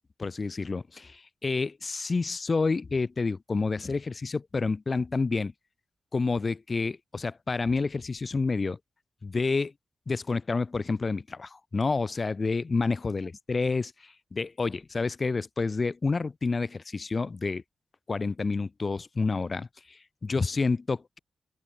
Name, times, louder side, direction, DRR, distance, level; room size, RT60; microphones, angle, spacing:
voice 1, 0.2-5.5 6.1-8.8 9.2-9.7 10.1-17.6 18.1-21.2, left 4 dB, 40° left, 3.2 m, -29 dB
open air
wide cardioid pair, 120°, 0 cm